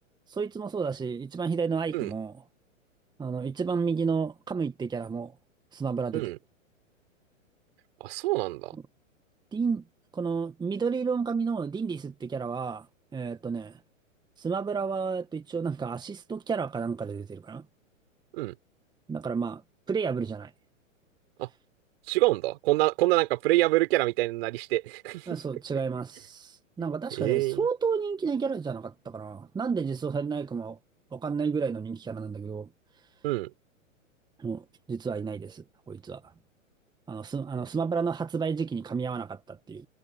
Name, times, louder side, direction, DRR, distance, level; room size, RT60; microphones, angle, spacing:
voice 1, 0.3-2.4 3.2-5.3 5.7-6.2 9.5-9.8 10.1-12.9 13.1-13.8 14.4-17.6 19.1-19.6 19.9-20.5 25.3-30.8 31.1-32.7 34.4-36.3 37.1-39.9, right 5 dB, 10° right, 1.7 m, -31 dB
voice 2, 8.0-8.7 18.3-18.5 21.4-21.5 22.1-25.3 27.2-27.6 33.2-33.5, right 19 dB, 50° right, 4.9 m, -26 dB
hypercardioid pair, 115°, 40 cm